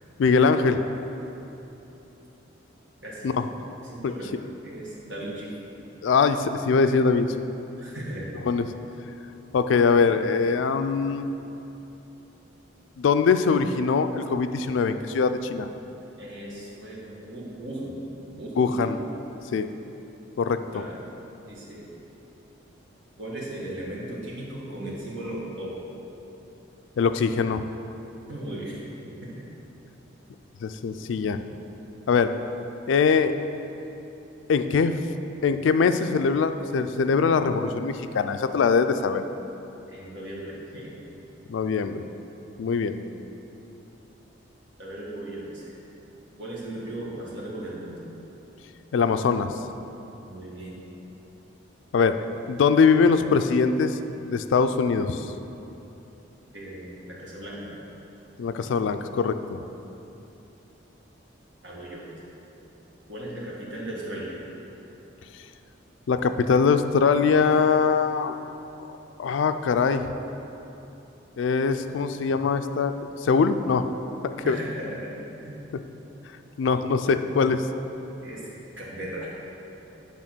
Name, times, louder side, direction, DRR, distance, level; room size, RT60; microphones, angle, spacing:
voice 1, 0.2-0.8 3.2-3.4 4.0-4.1 6.0-7.3 8.5-8.6 9.5-11.3 13.0-15.7 18.6-19.0 19.5-19.7 20.4-20.8 27.0-27.7 30.6-31.4 32.1-32.3 32.9-33.3 34.5-35.0 35.4-39.2 41.5-42.0 42.6-43.0 48.9-49.5 51.9-52.2 52.5-54.0 54.3-55.3 58.4-59.6 66.1-68.4 69.2-70.1 71.4-72.9 73.2-73.9 74.2-74.6 76.6-77.6, left 5 dB, 75° left, 10 dB, 0.3 m, -22 dB
voice 2, 3.8-4.3 4.6-5.5 7.8-8.3 16.2-19.0 20.7-21.0 21.4-21.9 23.2-25.8 28.3-28.8 29.4-29.5 39.9-41.1 44.8-45.8 46.4-48.0 50.3-50.9 56.5-57.8 61.6-62.3 63.1-64.4 74.4-75.1 75.4-75.6 78.2-78.4 78.8-79.3, right 1 dB, 70° right, -5 dB, 1.7 m, -37 dB
8.7 x 3.5 x 6.0 m, 3.0 s
head